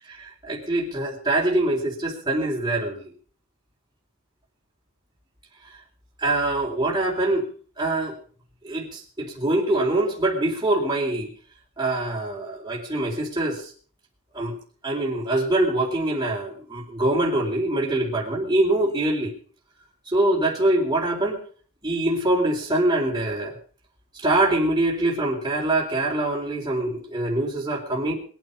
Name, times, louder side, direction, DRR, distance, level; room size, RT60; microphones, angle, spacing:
voice 1, 0.1-3.1 6.2-7.5 7.8-8.1 8.6-11.3 11.8-13.6 14.3-14.6 14.8-19.3 20.1-21.4 21.8-23.5 24.2-28.1, right 1 dB, 20° right, -4 dB, 4.1 m, -24 dB
22.0 x 9.4 x 5.5 m, 0.43 s
head